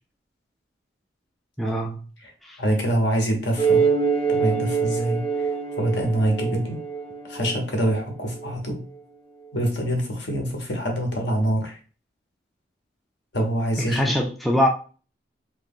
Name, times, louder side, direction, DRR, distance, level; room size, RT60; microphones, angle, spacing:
voice 1, 1.6-2.0 2.4-2.6 13.9-14.7, equal, ahead, 0.3 m, -23 dB
voice 2, 2.6-3.8 4.3-5.5 5.8-6.8 7.3-8.8 9.5-11.8 13.3-14.0, right 1 dB, 70° left, 1.1 m, -25 dB
sound 1, 3.6-8.5, right 5 dB, 35° left, 0.7 m, -25 dB
3.1 x 2.3 x 3.5 m
head